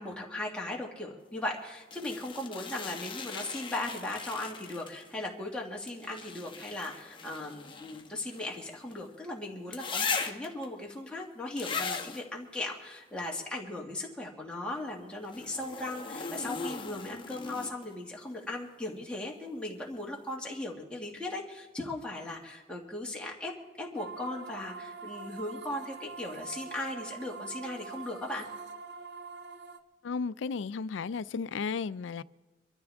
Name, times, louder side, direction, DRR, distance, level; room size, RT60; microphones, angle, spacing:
voice 1, 0.0-23.5 23.8-28.5, left 2 dB, 5° left, 2.1 m, -38 dB
sound 1, 1.9-5.1 5.9-9.1 9.7-10.6 11.6-12.2 15.2-17.9 19.8-19.9, left 5 dB, 25° left, 1.3 m, -38 dB
sound 2, 24.0-29.8, right 5 dB, 65° right, 1.0 m, -44 dB
voice 2, 30.0-32.2, left 5 dB, 85° left, 0.4 m, -34 dB
25.0 x 13.0 x 3.6 m
head